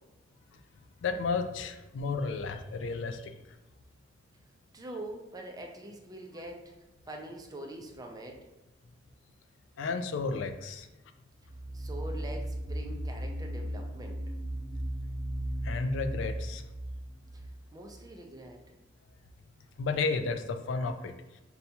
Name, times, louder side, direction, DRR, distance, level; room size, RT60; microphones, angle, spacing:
voice 1, 1.0-3.3 7.1-7.2 9.8-10.9 15.6-16.6 19.8-21.4, left 4 dB, 70° left, 7 dB, 0.3 m, -32 dB
voice 2, 4.7-6.7 7.1-8.4 11.7-14.2 17.7-18.6, right 1 dB, 20° right, 2 dB, 0.4 m, -44 dB
sound 1, 11.4-18.0, right 1 dB, 20° left, 0.6 m, -36 dB
5.3 x 2.3 x 2.8 m, 1.0 s
head